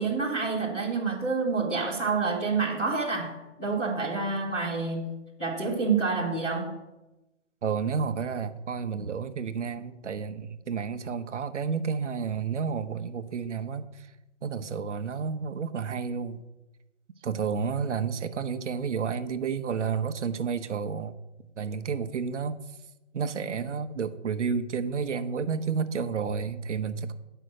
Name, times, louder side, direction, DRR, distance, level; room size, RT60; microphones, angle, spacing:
voice 1, 0.0-5.1 5.4-6.7, right 4 dB, 5° left, -10 dB, 0.4 m, -28 dB
voice 2, 7.6-14.1 14.4-16.4 17.2-21.1 21.6-22.6 23.1-27.1, right 6 dB, 70° right, 10 dB, 0.9 m, -31 dB
9.1 x 5.6 x 6.4 m, 1.0 s
hypercardioid pair, 150°, 37 cm